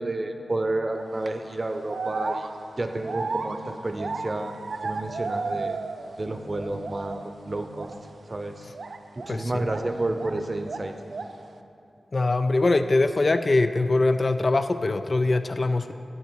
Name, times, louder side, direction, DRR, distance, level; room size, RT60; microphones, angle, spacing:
voice 1, 0.0-2.5 2.8-4.5 4.8-5.8 6.2-7.9 8.3-8.6 9.3-10.9, right 2 dB, 40° right, 6 dB, 0.7 m, -30 dB
sound 1, 0.9-1.3 1.9-6.2 6.5-7.3 7.7-8.0 8.7-10.4 10.6-11.4, right 4 dB, 70° right, 0.4 m, -34 dB
voice 2, 9.3-9.7 12.1-15.9, left 2 dB, 45° left, 9 dB, 0.4 m, -23 dB
11.0 x 7.7 x 4.5 m, 2.7 s
wide cardioid pair, 65°, 0 cm